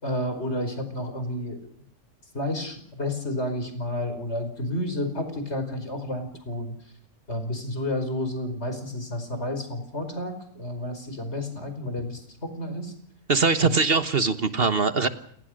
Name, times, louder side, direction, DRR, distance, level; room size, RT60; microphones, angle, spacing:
voice 1, 0.0-1.7 2.3-6.7 7.3-12.9 13.6-13.7, left 1 dB, 60° left, 8 dB, 5.4 m, -31 dB
voice 2, 13.3-15.1, right 4 dB, 50° right, 11 dB, 1.4 m, -22 dB
29.0 x 20.0 x 6.5 m, 0.65 s
omnidirectional pair, 1.3 m